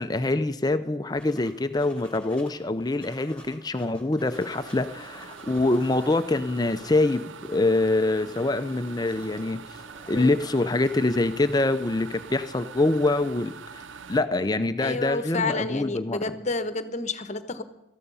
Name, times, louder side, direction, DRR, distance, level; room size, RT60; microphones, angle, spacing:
voice 1, 0.0-7.2 7.5-9.6 10.1-13.8 14.1-16.2, left 2 dB, 20° left, 10 dB, 0.5 m, -25 dB
sound 1, 1.2-2.5 2.8-6.1 6.4-11.1, equal, 5° left, 3.5 m, -51 dB
sound 2, 4.3-14.2, right 5 dB, 90° right, 0.6 m, -44 dB
voice 2, 10.1-10.5 14.8-17.6, left 3 dB, 40° left, 12 dB, 1.1 m, -30 dB
18.0 x 14.0 x 5.5 m, 0.92 s
head